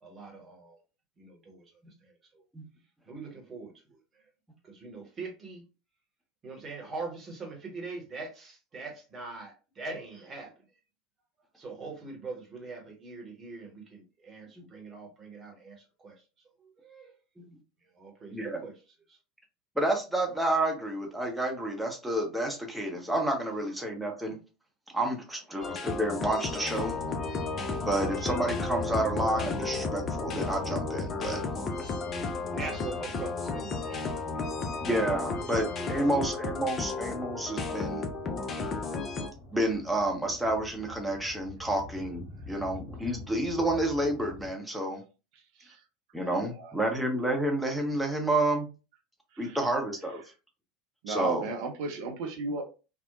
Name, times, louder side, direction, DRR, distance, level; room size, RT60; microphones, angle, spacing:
voice 1, 0.0-0.8 1.2-1.6 2.0-2.1 3.1-3.7 4.6-5.6 6.4-10.5 11.6-16.2 16.6-17.1 18.0-18.7 25.5-25.7 32.5-34.2 35.8-36.0, right 3 dB, 30° right, 1 dB, 0.9 m, -42 dB
voice 2, 18.3-18.6 19.8-24.4 24.9-27.0 27.9-31.4 31.8-31.9 34.8-38.0 39.5-45.0 46.1-48.7 49.4-50.2 51.1-51.5, right 1 dB, 5° right, 1 dB, 0.7 m, -30 dB
sound 1, 25.6-39.3, left 4 dB, 35° left, 0.5 m, -34 dB
sound 2, 26.8-44.5, left 2 dB, 60° left, 1.2 m, -43 dB
voice 3, 51.0-52.6, right 3 dB, 55° right, 3 dB, 0.6 m, -34 dB
2.8 x 2.0 x 2.4 m, 0.32 s
figure-of-eight pair, 75°, 0 cm